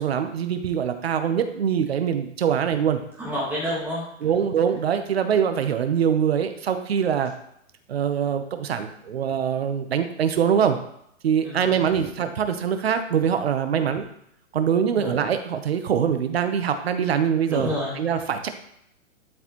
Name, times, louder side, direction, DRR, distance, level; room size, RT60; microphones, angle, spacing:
voice 1, 0.0-3.0 4.2-7.3 7.9-10.8 11.2-14.1 14.5-17.7 18.0-18.5, right 8 dB, 50° right, 8 dB, 1.0 m, -23 dB
voice 2, 3.2-4.5 11.4-12.0 13.8-14.0 15.0-15.2 17.5-18.0, equal, 5° right, -7 dB, 1.5 m, -31 dB
12.0 x 4.7 x 3.1 m, 0.73 s
hypercardioid pair, 175°, 39 cm